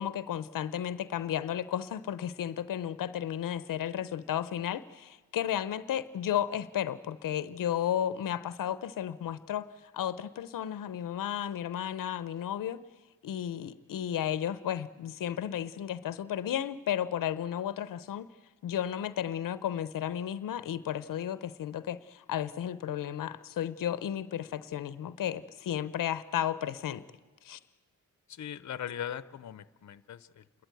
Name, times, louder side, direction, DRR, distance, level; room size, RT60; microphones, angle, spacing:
voice 1, 0.0-9.7 9.9-12.8 13.2-18.3 18.6-27.0 27.4-27.6, left 10 dB, 90° left, 15 dB, 0.7 m, -33 dB
voice 2, 28.3-30.6, left 9 dB, 60° left, 16 dB, 0.8 m, -40 dB
28.5 x 13.0 x 9.2 m, 1.3 s
cardioid pair, 80°, 32 cm